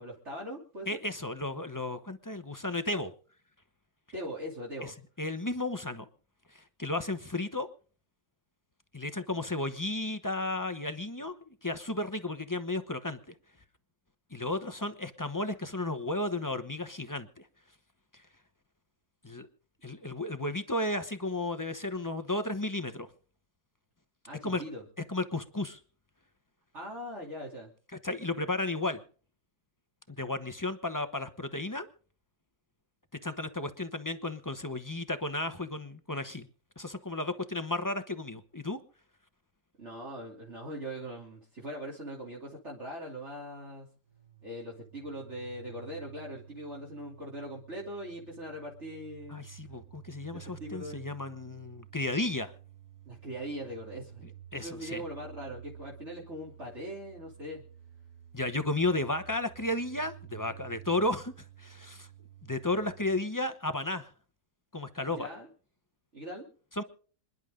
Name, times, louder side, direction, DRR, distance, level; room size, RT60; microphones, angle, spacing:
voice 1, 0.0-0.9 4.1-4.9 24.3-24.8 26.7-27.7 39.8-43.9 44.4-49.4 50.3-51.0 53.1-57.6 65.1-65.5 66.1-66.5, equal, 35° right, -4 dB, 3.3 m, -41 dB
voice 2, 0.9-3.1 5.2-6.1 6.5-7.7 8.9-13.2 14.3-17.3 19.2-19.5 19.8-23.1 24.4-24.6 25.1-25.8 28.0-29.0 30.1-31.9 33.2-36.5 36.8-38.8 49.3-52.5 54.5-55.0 58.3-61.3 61.6-62.1 62.5-64.1 64.7-65.3 66.8-66.9, left 2 dB, 20° left, 10 dB, 0.5 m, -33 dB
sound 1, 44.0-63.2, right 10 dB, 55° right, 2.1 m, -51 dB
27.0 x 11.0 x 3.8 m, 0.42 s
omnidirectional pair, 2.0 m